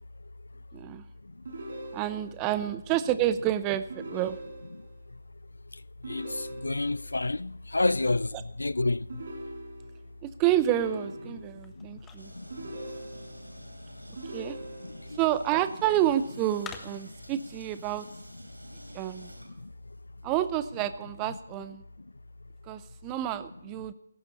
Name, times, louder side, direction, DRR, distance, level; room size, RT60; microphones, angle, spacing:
voice 1, 0.7-1.1 1.9-4.4 10.2-12.3 14.3-14.6 15.2-18.1 18.9-19.3 20.2-21.8 22.7-23.9, right 12 dB, 15° right, 0.7 m, -29 dB
sound 1, 1.4-2.5 3.9-5.0 6.0-7.1 9.1-10.1 10.7-11.7 12.5-13.5 14.2-15.2, right 1 dB, 50° right, 4.8 m, -42 dB
voice 2, 6.0-9.1 11.8-11.9 12.3-12.5 14.8-15.2 19.6-19.7, left 2 dB, 70° left, 0.4 m, -29 dB
sound 2, 10.5-17.3, left 6 dB, 10° left, 1.3 m, -52 dB
sound 3, 12.2-20.1, right 1 dB, 85° right, 3.7 m, -50 dB
18.0 x 14.5 x 4.1 m
figure-of-eight pair, 145°, 0 cm